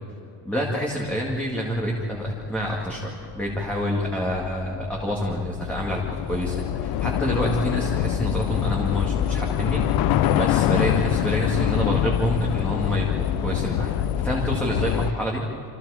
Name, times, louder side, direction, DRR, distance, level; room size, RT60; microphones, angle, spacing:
voice 1, 0.4-6.0 6.3-6.6 6.8-9.8 10.3-15.4, equal, 5° left, -3 dB, 2.1 m, -27 dB
Train / Subway metro underground, 2.1-15.1, left 11 dB, 45° left, 0.7 m, -25 dB
28.0 x 27.5 x 5.0 m, 2.5 s
cardioid pair, 180°, 50 cm